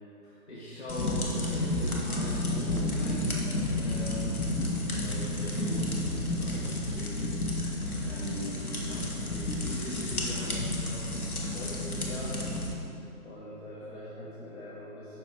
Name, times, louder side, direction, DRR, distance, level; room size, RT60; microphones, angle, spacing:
voice 1, 0.2-3.4 3.7-7.6 8.0-12.4 13.2-15.2, equal, 50° left, -9 dB, 1.5 m, -41 dB
sound 1, 0.9-12.7, left 1 dB, 80° left, 1.2 m, -31 dB
5.9 x 5.0 x 4.7 m, 2.8 s
figure-of-eight pair, 145°, 43 cm